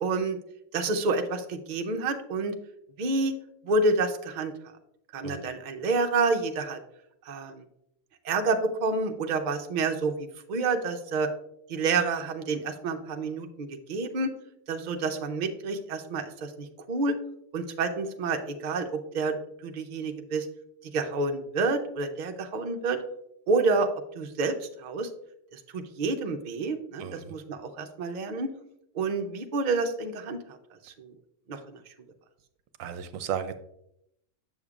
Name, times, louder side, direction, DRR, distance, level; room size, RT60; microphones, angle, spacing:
voice 1, 0.0-0.4 0.7-2.5 3.0-3.3 3.7-4.5 5.1-6.8 7.3-7.6 8.2-11.3 11.7-14.3 14.7-17.2 17.5-19.4 19.6-20.5 20.9-23.0 23.5-23.9 24.2-24.6 24.8-25.1 25.5-28.5 29.0-30.4 31.1-31.2 31.5-31.6, right 3 dB, 50° right, 5 dB, 0.6 m, -28 dB
voice 2, 27.0-27.3 32.8-33.6, right 8 dB, 75° right, 10 dB, 0.9 m, -34 dB
7.2 x 6.7 x 2.4 m, 0.77 s
omnidirectional pair, 1.4 m